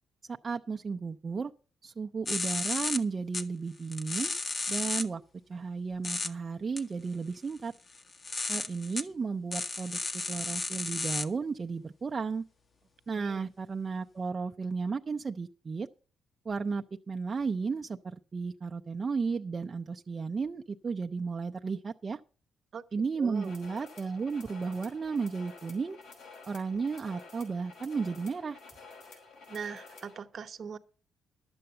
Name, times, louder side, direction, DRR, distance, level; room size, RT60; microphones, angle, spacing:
voice 1, 0.3-1.5 1.8-4.3 4.7-5.2 5.5-7.7 8.5-10.0 10.3-12.5 13.1-15.9 16.5-22.2 22.9-26.0 26.5-28.6, right 5 dB, 35° right, 0.5 m, -34 dB
sound 1, 2.3-3.0 3.3-3.4 3.9-5.0 6.0-6.3 6.8-6.9 7.9-9.0 9.5-11.2, left 3 dB, 40° left, 1.1 m, -33 dB
voice 2, 23.2-23.5 29.5-30.8, right 6 dB, 50° right, 0.9 m, -41 dB
sound 2, 23.3-30.2, left 4 dB, 80° left, 5.2 m, -51 dB
11.5 x 7.8 x 6.6 m
cardioid pair, 90°, 0 cm